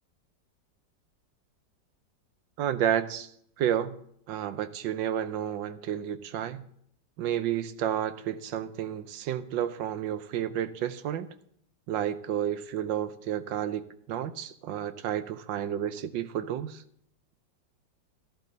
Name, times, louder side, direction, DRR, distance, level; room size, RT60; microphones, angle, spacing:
voice 1, 2.6-3.3 3.6-4.0 4.3-6.6 7.2-11.3 11.9-16.8, right 10 dB, 85° right, 12 dB, 1.5 m, -31 dB
14.0 x 11.5 x 4.0 m, 0.67 s
omnidirectional pair, 2.0 m